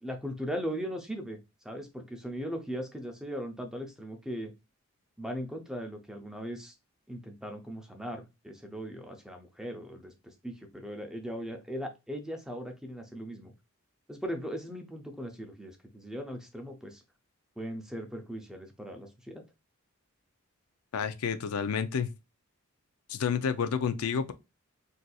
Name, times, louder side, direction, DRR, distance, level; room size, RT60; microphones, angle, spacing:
voice 1, 0.0-1.4 1.6-4.5 5.2-6.7 7.1-13.5 14.1-17.0 17.6-19.4, equal, 5° right, 0.5 m, -39 dB
voice 2, 20.9-22.1 23.1-24.3, left 6 dB, 80° left, 0.4 m, -30 dB
4.0 x 2.6 x 2.3 m
head